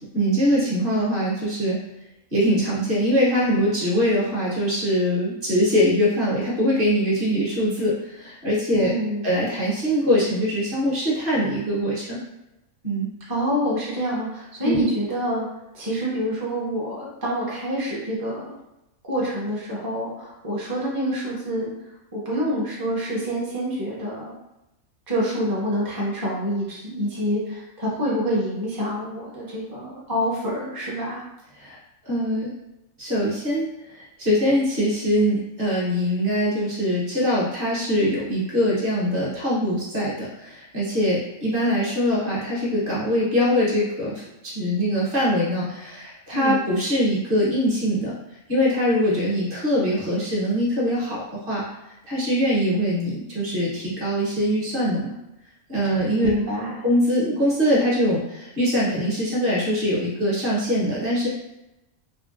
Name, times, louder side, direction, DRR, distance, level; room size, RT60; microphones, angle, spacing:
voice 1, 0.1-1.8 2.3-8.9 9.2-12.2 12.8-13.1 14.6-14.9 31.5-31.8 32.1-32.5 33.0-48.1 48.5-51.6 52.1-55.1 55.7-56.3 56.8-61.3, equal, 45° right, -6 dB, 1.0 m, -23 dB
voice 2, 8.7-9.2 13.3-15.5 15.7-18.6 19.1-21.7 22.1-24.3 25.1-31.2 46.3-46.6 56.2-56.8, equal, 25° right, -5 dB, 0.5 m, -27 dB
3.6 x 2.2 x 2.5 m, 0.91 s
omnidirectional pair, 1.4 m